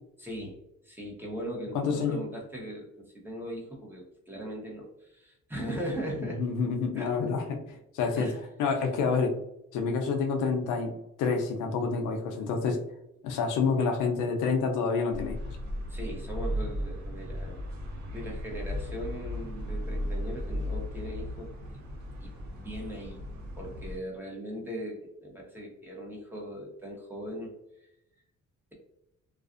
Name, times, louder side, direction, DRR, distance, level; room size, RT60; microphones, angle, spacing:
voice 1, 0.2-0.6 0.8-6.4 6.9-7.1 8.2-8.4 13.7-13.9 15.9-17.6 18.1-21.5 22.2-23.2 23.6-27.5, equal, 5° right, -3 dB, 0.8 m, -39 dB
voice 2, 1.7-2.2 6.2-8.3 8.6-9.4 9.7-12.8 13.2-15.6, left 5 dB, 85° left, 3 dB, 0.5 m, -28 dB
sound 1, 15.1-24.0, equal, 70° right, 0.7 m, -36 dB
2.4 x 2.3 x 2.4 m, 0.84 s
cardioid pair, 90°, 30 cm